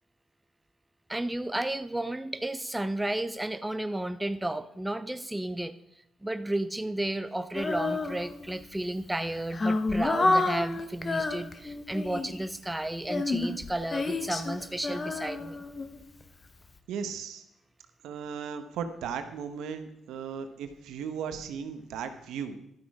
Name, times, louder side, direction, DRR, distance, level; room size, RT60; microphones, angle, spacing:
voice 1, 1.1-5.7 6.2-15.6, right 1 dB, 10° right, 11 dB, 0.5 m, -33 dB
Female singing, 7.5-8.6 9.2-12.5 13.0-16.2, left 3 dB, 30° left, 0.9 m, -29 dB
voice 2, 16.9-17.4 18.0-22.6, right 7 dB, 85° right, 9 dB, 0.9 m, -36 dB
12.0 x 6.3 x 4.8 m, 0.81 s
cardioid pair, 90°, 0 cm